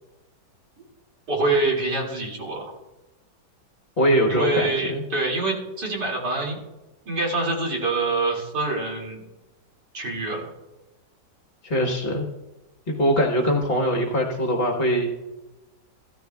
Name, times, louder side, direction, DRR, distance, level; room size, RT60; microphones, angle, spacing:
voice 1, 1.3-2.7 4.3-6.6 7.1-9.2 9.9-10.5, right 2 dB, 65° right, -2 dB, 3.0 m, -25 dB
voice 2, 4.0-5.0 11.6-12.2 12.9-15.2, equal, 35° left, 0 dB, 1.3 m, -22 dB
15.5 x 13.5 x 2.3 m, 1.1 s
omnidirectional pair, 2.0 m